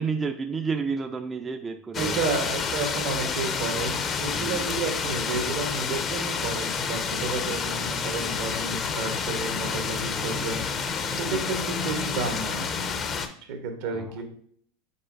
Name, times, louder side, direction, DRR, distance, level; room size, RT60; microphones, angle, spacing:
voice 1, 0.0-2.3 4.3-4.7 7.5-7.6 10.1-10.5 11.0-11.4 13.8-14.2, right 5 dB, 20° right, 6 dB, 0.3 m, -32 dB
sound 1, 1.9-13.3, left 5 dB, 35° left, 0.5 m, -29 dB
voice 2, 2.0-12.8 13.5-14.2, right 4 dB, 70° right, 5 dB, 1.0 m, -31 dB
5.3 x 3.8 x 2.5 m, 0.64 s
hypercardioid pair, 100°, 0 cm